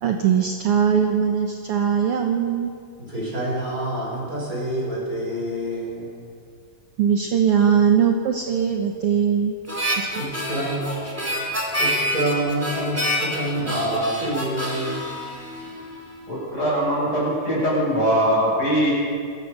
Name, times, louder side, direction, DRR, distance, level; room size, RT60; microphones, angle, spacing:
voice 1, 0.0-2.7 7.0-9.5 10.0-10.1 10.3-10.4, right 7 dB, 60° right, 3 dB, 1.5 m, -20 dB
voice 2, 3.0-6.1 10.2-11.4 11.8-15.0, right 1 dB, 25° right, -4 dB, 6.5 m, -27 dB
Harmonica, 9.7-16.2, equal, 5° right, 3.2 m, -27 dB
voice 3, 16.3-18.9, equal, 25° left, -6 dB, 8.5 m, -22 dB
27.0 x 15.5 x 6.8 m, 2.2 s
omnidirectional pair, 4.0 m